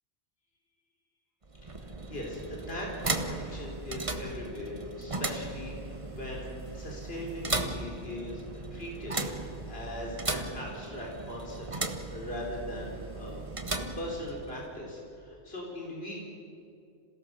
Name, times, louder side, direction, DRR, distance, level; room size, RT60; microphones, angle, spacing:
sound 1, 1.4-14.7, right 2 dB, 30° right, 1.2 m, -37 dB
voice 1, 1.8-11.7 12.1-13.4 14.0-16.2, left 1 dB, 60° left, -2 dB, 3.9 m, -40 dB
27.5 x 17.0 x 6.6 m, 2.6 s
omnidirectional pair, 1.2 m